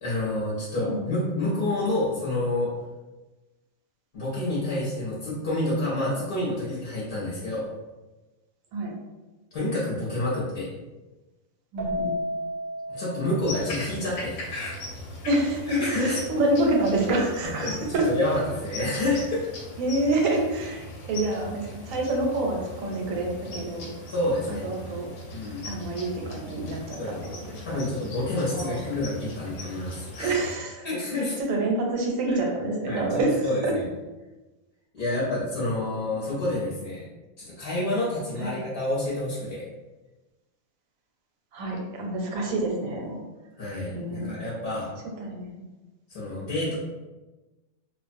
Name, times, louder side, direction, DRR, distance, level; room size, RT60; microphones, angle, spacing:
voice 1, 0.0-2.7 4.1-7.7 9.5-10.7 12.9-14.7 15.7-16.2 17.6-19.4 24.1-24.7 25.3-25.6 27.0-27.2 27.6-30.4 30.8-31.3 32.9-33.9 34.9-37.0 37.4-39.6 43.6-44.9 46.1-46.7, left 1 dB, 50° left, -8 dB, 0.8 m, -28 dB
voice 2, 11.7-12.1 15.3-18.1 19.8-23.9 24.6-25.1 25.6-27.4 27.7-27.8 28.5-28.8 30.2-30.9 31.2-33.7 38.4-38.5 41.5-43.2 43.9-44.3 45.2-45.7, right 2 dB, 80° right, 0 dB, 1.0 m, -27 dB
Keyboard (musical), 11.8-14.3, equal, 65° right, 0.6 m, -33 dB
sound 1, 13.4-30.6, left 1 dB, 85° left, 1.0 m, -39 dB
2.3 x 2.1 x 2.5 m, 1.1 s
omnidirectional pair, 1.4 m